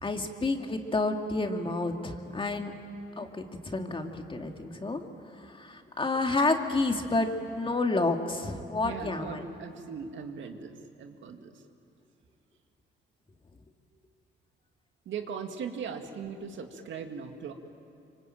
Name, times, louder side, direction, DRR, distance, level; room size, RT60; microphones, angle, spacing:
voice 1, 0.0-2.7 3.2-5.0 5.4-7.3 7.6-9.4, left 3 dB, 25° left, 4 dB, 2.3 m, -30 dB
voice 2, 8.8-11.6 15.1-17.5, right 6 dB, 70° right, 5 dB, 2.2 m, -39 dB
25.5 x 24.5 x 8.9 m, 2.7 s
cardioid pair, 90°, 20 cm